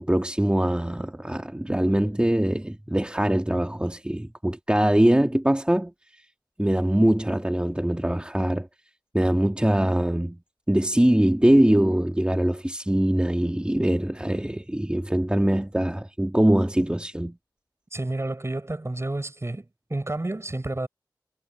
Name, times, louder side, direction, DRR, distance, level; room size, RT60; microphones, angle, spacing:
voice 1, 0.0-5.9 6.6-8.7 9.1-10.4 10.7-17.4, right 1 dB, 10° right, 2.2 m, -22 dB
voice 2, 17.9-20.9, right 2 dB, 35° right, 5.5 m, -30 dB
wide cardioid pair, 65°, 8 cm